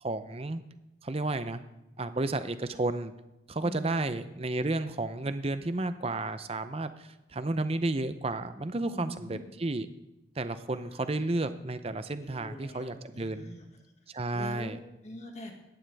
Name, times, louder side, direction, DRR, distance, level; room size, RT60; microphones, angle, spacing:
voice 1, 0.0-0.6 1.0-1.6 2.0-3.1 3.5-9.9 10.4-13.5 14.1-14.8, right 2 dB, 30° right, 11 dB, 0.6 m, -32 dB
voice 2, 3.6-4.1 8.9-9.5 10.7-11.0 12.1-13.7 14.3-15.5, left 1 dB, 35° left, 2 dB, 2.0 m, -44 dB
17.0 x 11.5 x 3.5 m, 0.98 s
head